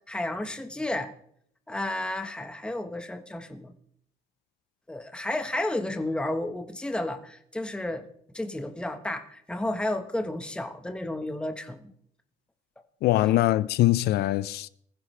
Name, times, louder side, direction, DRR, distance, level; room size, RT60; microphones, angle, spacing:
voice 1, 0.1-1.1 1.7-3.7 4.9-8.1 8.3-11.9 13.2-13.3, left 1 dB, 5° left, 1.3 m, -32 dB
voice 2, 13.0-14.7, left 15 dB, 75° left, 0.6 m, -22 dB
20.5 x 15.0 x 3.4 m
cardioid pair, 110°, 17 cm